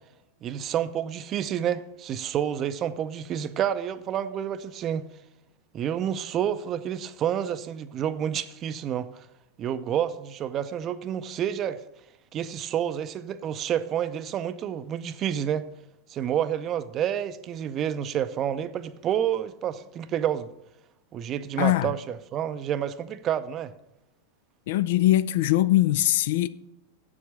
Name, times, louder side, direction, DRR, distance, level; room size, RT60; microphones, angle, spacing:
voice 1, 0.4-5.1 5.7-9.3 9.6-11.8 12.3-15.7 16.1-20.5 21.1-23.7, right 9 dB, 30° right, 0.6 m, -29 dB
voice 2, 21.6-21.9 24.7-26.5, left 15 dB, 55° left, 0.4 m, -22 dB
8.1 x 7.3 x 7.4 m
figure-of-eight pair, 90°, 0 cm